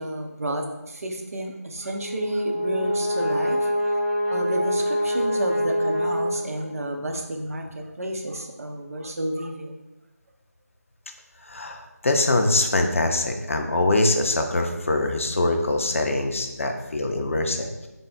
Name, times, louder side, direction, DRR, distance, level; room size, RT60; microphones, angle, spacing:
voice 1, 0.0-3.8 4.3-9.7, right 1 dB, 65° right, 3 dB, 0.6 m, -31 dB
Brass instrument, 1.8-6.9, equal, 20° left, 0.7 m, -25 dB
voice 2, 11.4-17.9, left 2 dB, 55° left, 5 dB, 0.4 m, -23 dB
3.4 x 2.0 x 3.9 m, 1.0 s
figure-of-eight pair, 165°, 9 cm